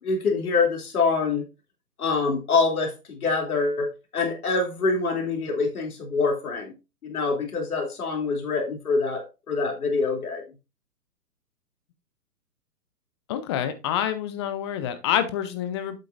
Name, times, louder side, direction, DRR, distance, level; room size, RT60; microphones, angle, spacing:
voice 1, 0.0-1.4 2.0-6.7 7.0-10.4, left 4 dB, 65° left, 2 dB, 3.0 m, -25 dB
voice 2, 13.3-16.0, left 10 dB, 20° left, 11 dB, 0.6 m, -27 dB
8.5 x 7.6 x 2.5 m, 0.27 s
figure-of-eight pair, 125°, 48 cm